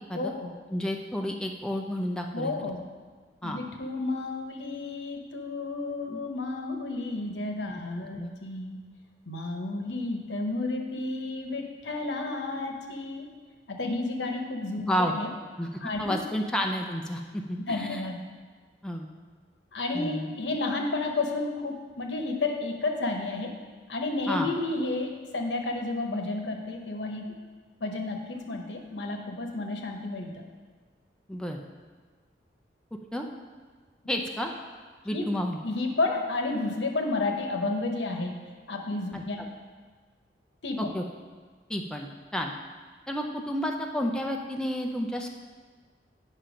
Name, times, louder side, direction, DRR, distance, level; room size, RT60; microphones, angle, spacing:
voice 1, 0.1-0.5 2.3-2.9 3.4-8.8 9.3-13.3 13.7-15.3 15.8-16.1 17.7-18.2 19.7-23.6 23.9-27.4 27.8-30.4 35.1-35.3 35.6-38.4 38.7-39.5 40.6-40.9, left 2 dB, 80° left, 3 dB, 1.0 m, -31 dB
voice 2, 0.7-2.5 3.4-3.6 6.1-6.2 7.7-7.8 8.2-8.3 14.8-15.1 15.6-18.0 18.8-19.1 19.9-20.3 24.3-24.5 31.3-31.6 33.1-33.3 34.1-34.5 35.0-35.6 39.1-39.2 40.8-41.0 41.7-42.5 43.1-45.3, equal, 5° left, 1 dB, 0.5 m, -31 dB
8.9 x 5.7 x 5.1 m, 1.5 s
head